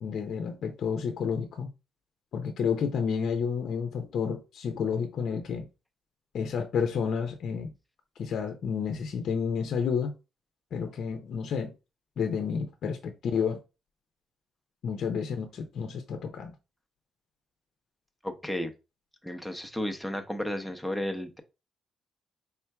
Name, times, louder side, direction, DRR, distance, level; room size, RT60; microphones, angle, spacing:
voice 1, 0.0-1.7 2.3-5.7 6.3-7.7 8.2-10.1 10.7-11.7 12.2-13.6 14.8-16.5, left 6 dB, 65° left, 0.6 m, -30 dB
voice 2, 18.2-18.7 19.2-21.4, left 1 dB, ahead, 0.8 m, -33 dB
4.3 x 3.6 x 2.3 m
cardioid pair, 90°, 0 cm